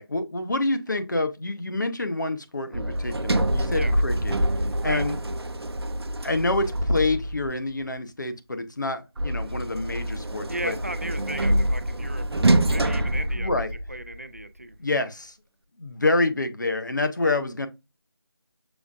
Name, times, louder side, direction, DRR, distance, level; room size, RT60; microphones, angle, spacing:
voice 1, 0.0-4.4 4.8-5.2 6.2-10.8 13.4-13.7 14.8-15.3 15.8-17.7, left 2 dB, 50° left, 0.8 m, -27 dB
Sliding door, 2.7-7.6 9.2-14.1, right 1 dB, 85° right, 0.6 m, -25 dB
voice 2, 10.5-13.5 13.9-14.8, right 1 dB, 35° right, 0.4 m, -35 dB
7.0 x 2.4 x 2.5 m
figure-of-eight pair, 180°, 13 cm